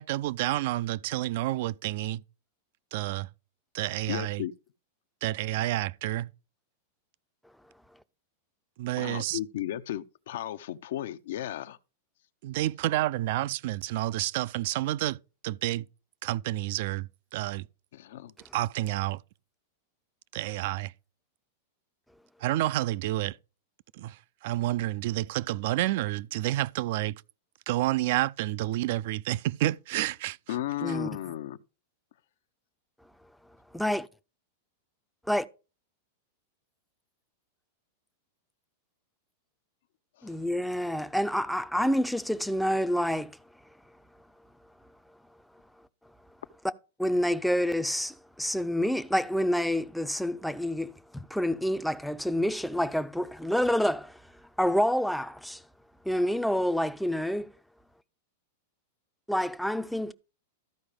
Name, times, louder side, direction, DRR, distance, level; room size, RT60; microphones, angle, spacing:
voice 1, 0.0-2.2 2.9-3.3 3.7-4.4 5.2-6.3 8.8-9.4 12.4-15.2 15.4-15.9 16.2-17.6 18.5-19.2 20.3-20.9 22.4-23.4 24.0-24.2 24.4-27.2 27.7-30.4, right 15 dB, 55° right, 0.4 m, -29 dB
voice 2, 4.1-4.5 9.0-11.8 17.9-18.3 30.5-31.6 40.2-40.3, left 13 dB, 70° left, 0.7 m, -35 dB
voice 3, 33.7-34.1 35.3-35.5 40.2-43.4 47.0-54.2 54.6-55.6 56.0-57.5 59.3-60.1, equal, ahead, 0.5 m, -28 dB
13.5 x 4.9 x 5.0 m
supercardioid pair, 160°, 0 cm